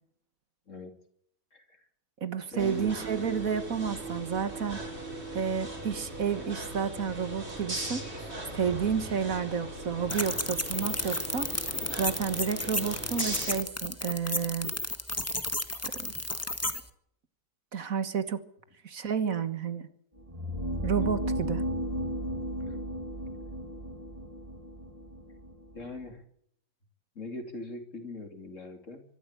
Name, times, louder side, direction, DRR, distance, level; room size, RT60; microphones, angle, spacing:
voice 1, 1.5-1.9 2.5-3.0 21.0-21.2 22.6-22.9 25.7-26.2 27.1-29.0, left 2 dB, 50° left, 6 dB, 3.4 m, -41 dB
voice 2, 2.2-4.8 5.3-8.3 8.5-11.7 12.0-14.7 15.9-16.1 17.7-18.4 18.8-19.9 20.8-21.6, right 7 dB, 65° right, 12 dB, 1.8 m, -31 dB
sound 1, 2.6-13.6, right 1 dB, 40° right, 5.1 m, -39 dB
sound 2, 10.1-16.8, left 1 dB, 10° left, 1.4 m, -33 dB
sound 3, 20.2-26.1, equal, 20° right, 2.7 m, -34 dB
24.5 x 13.5 x 8.3 m, 0.68 s
omnidirectional pair, 1.6 m